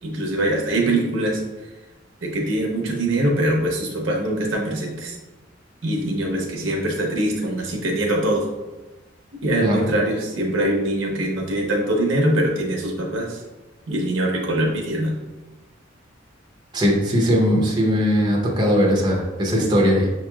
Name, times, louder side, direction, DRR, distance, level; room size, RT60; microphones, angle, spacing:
voice 1, 0.0-1.4 2.2-5.2 5.8-8.5 9.4-13.4 13.9-15.1, right 1 dB, 70° right, 0 dB, 0.8 m, -23 dB
voice 2, 16.7-20.1, equal, 20° right, -3 dB, 0.7 m, -19 dB
6.2 x 3.0 x 2.3 m, 1.1 s
head